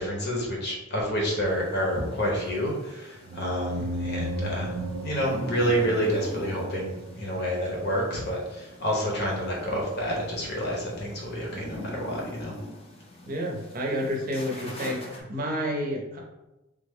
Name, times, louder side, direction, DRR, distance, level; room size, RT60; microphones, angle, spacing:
voice 1, 0.0-12.5, equal, 55° left, -2 dB, 0.9 m, -29 dB
sound 1, 1.5-15.2, equal, 30° left, 0.5 m, -44 dB
sound 2, 3.2-7.8, right 1 dB, 80° right, 0.3 m, -35 dB
voice 2, 13.3-16.2, equal, 45° right, -1 dB, 0.6 m, -30 dB
3.3 x 2.1 x 3.5 m, 1.0 s
head